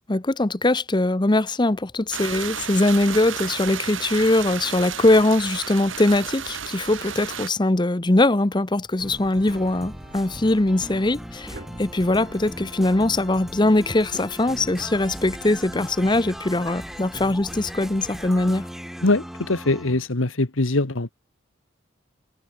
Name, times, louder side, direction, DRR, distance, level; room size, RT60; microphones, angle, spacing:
voice 1, 0.1-18.7, left 2 dB, 25° left, 0.8 m, -21 dB
sound 1, 2.1-7.5, right 7 dB, 85° right, 4.1 m, -33 dB
sound 2, 9.0-20.1, equal, ahead, 4.6 m, -39 dB
sound 3, 9.0-18.5, right 1 dB, 50° right, 6.6 m, -45 dB
voice 2, 19.0-21.1, left 2 dB, 90° left, 1.6 m, -22 dB
head